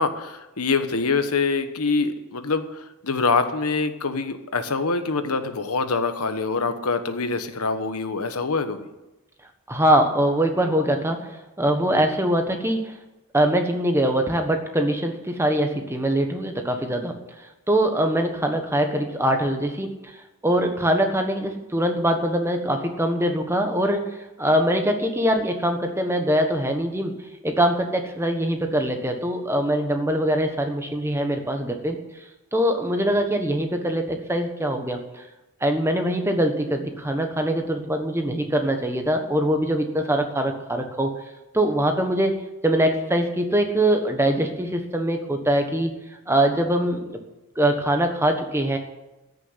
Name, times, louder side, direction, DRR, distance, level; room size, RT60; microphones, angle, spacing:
voice 1, 0.0-8.9, left 4 dB, 85° left, 9 dB, 1.2 m, -25 dB
voice 2, 9.7-11.3 11.6-12.9 13.3-17.1 17.7-19.9 20.4-24.0 24.4-27.1 27.4-32.0 32.5-35.2 35.6-41.1 41.5-42.4 42.6-46.0 46.3-47.2 47.6-48.8, right 1 dB, 10° right, 5 dB, 1.3 m, -23 dB
14.5 x 6.8 x 9.9 m, 0.99 s
head